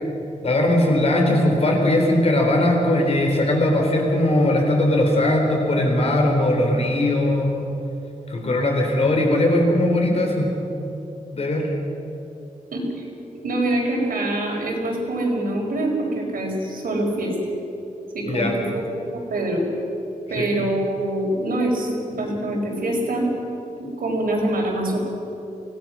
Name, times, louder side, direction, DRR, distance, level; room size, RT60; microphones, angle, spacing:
voice 1, 0.4-7.7 8.3-10.5 11.3-11.7 18.3-18.5 20.4-20.6, left 1 dB, 45° left, 1 dB, 3.9 m, -19 dB
voice 2, 12.7-13.1 13.4-17.3 18.1-18.7 19.0-19.6 20.3-23.3 23.8-25.0, right 1 dB, 90° right, -2 dB, 5.4 m, -24 dB
25.0 x 18.0 x 6.3 m, 2.9 s
wide cardioid pair, 175°, 14 cm